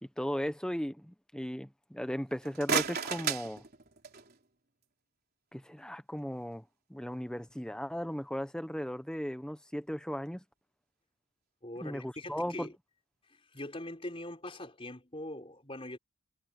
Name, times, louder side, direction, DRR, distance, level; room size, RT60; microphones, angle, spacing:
voice 1, 0.0-3.6 5.5-6.6 6.9-10.4 11.8-12.7, equal, 5° left, 0.8 m, -36 dB
sound 1, 2.3-4.4, right 6 dB, 40° right, 3.8 m, -34 dB
voice 2, 11.6-12.7 13.3-16.0, left 1 dB, 25° left, 4.6 m, -42 dB
head